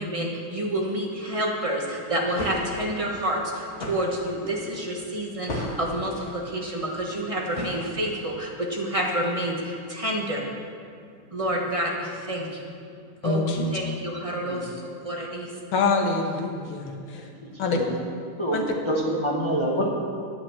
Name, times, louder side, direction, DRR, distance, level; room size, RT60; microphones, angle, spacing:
voice 1, 0.0-10.4 11.3-12.7 13.2-15.5, right 1 dB, 25° right, -1 dB, 0.8 m, -29 dB
sound 1, 2.1-8.4, left 1 dB, 45° left, 2.2 m, -36 dB
voice 2, 13.2-13.8 15.7-17.3 17.6-17.8 18.5-18.7, left 3 dB, 75° left, 2 dB, 2.0 m, -25 dB
voice 3, 18.9-19.9, equal, 20° left, -3 dB, 0.9 m, -26 dB
10.5 x 6.8 x 7.6 m, 2.3 s
omnidirectional pair, 2.3 m